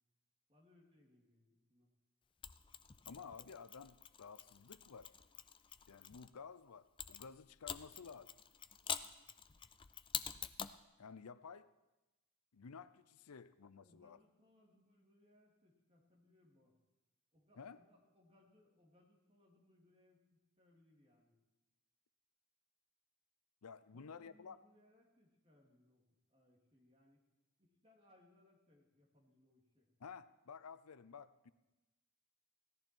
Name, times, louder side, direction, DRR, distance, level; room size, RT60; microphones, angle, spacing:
voice 1, 0.5-1.9 13.8-16.8 17.3-20.2 20.6-21.4 23.9-27.2 27.6-29.9, left 1 dB, 25° right, -1 dB, 2.8 m, -70 dB
Mechanisms, 2.4-6.3 7.0-10.8, left 8 dB, 20° left, 0.4 m, -47 dB
voice 2, 3.1-5.1 5.9-8.3 11.0-11.7 12.5-14.2 17.6-17.8 23.6-24.6 30.0-31.5, left 6 dB, 90° left, 14 dB, 0.6 m, -53 dB
17.0 x 13.5 x 4.6 m, 1.0 s
head